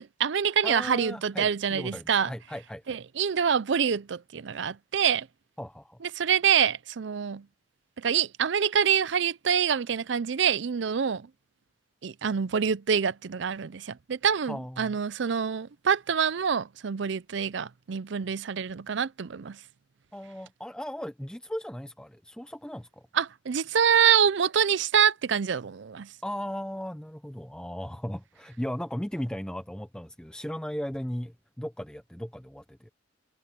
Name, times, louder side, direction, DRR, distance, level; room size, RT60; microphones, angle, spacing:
voice 1, 0.0-2.3 2.9-5.3 6.2-7.4 8.0-11.2 12.0-19.6 23.2-26.1, right 7 dB, 65° right, 0.5 m, -26 dB
voice 2, 0.6-3.0 5.6-6.0 14.4-15.0 20.1-23.1 26.2-32.9, equal, 5° left, 0.6 m, -37 dB
head